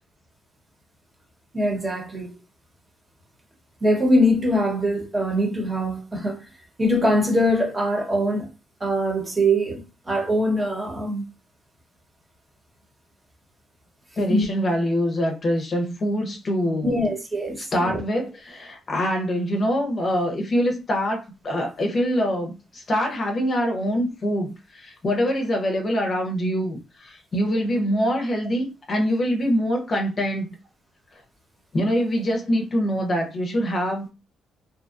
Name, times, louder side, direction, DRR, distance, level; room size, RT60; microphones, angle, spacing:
voice 1, 1.5-2.3 3.8-6.4 6.8-8.5 8.8-11.2 14.3-14.5 16.8-18.0, equal, 20° right, 1.1 m, -22 dB
voice 2, 14.2-17.1 17.6-30.5 31.7-34.1, equal, 40° left, 0.6 m, -24 dB
2.7 x 2.2 x 2.5 m
cardioid pair, 90°, 0 cm